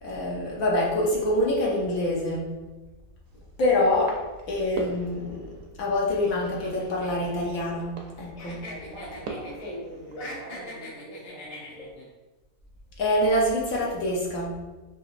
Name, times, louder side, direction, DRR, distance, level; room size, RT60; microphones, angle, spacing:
voice 1, 0.0-2.5 3.6-4.1 4.5-8.6 13.0-14.6, left 1 dB, 65° left, -3 dB, 1.2 m, -25 dB
sound 1, 3.2-10.3, right 3 dB, 70° right, 1.0 m, -43 dB
sound 2, 6.2-8.1 8.4-9.8 10.1-12.0, left 2 dB, 85° left, 1.5 m, -42 dB
voice 2, 8.6-12.0, right 1 dB, 35° right, -6 dB, 0.7 m, -41 dB
5.3 x 2.8 x 2.5 m, 1.2 s
omnidirectional pair, 1.7 m